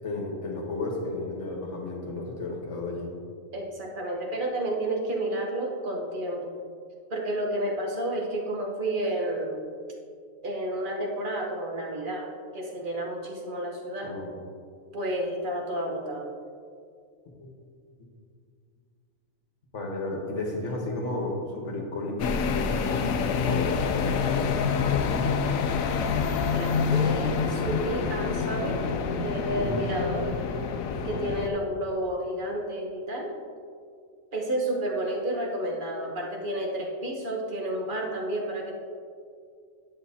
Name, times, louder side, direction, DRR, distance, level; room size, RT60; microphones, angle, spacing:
voice 1, 0.0-3.1 14.0-14.3 19.7-25.2 29.5-29.8, left 2 dB, 65° left, 0 dB, 1.5 m, -33 dB
voice 2, 3.5-6.5 7.1-9.6 10.4-12.3 12.5-14.1 14.9-16.3 26.5-28.8 29.2-30.2 31.0-33.3 34.3-38.7, right 1 dB, 40° right, -1 dB, 1.2 m, -31 dB
sound 1, 22.2-31.5, left 6 dB, 90° left, 1.0 m, -27 dB
9.8 x 7.9 x 2.8 m, 2.3 s
omnidirectional pair, 1.4 m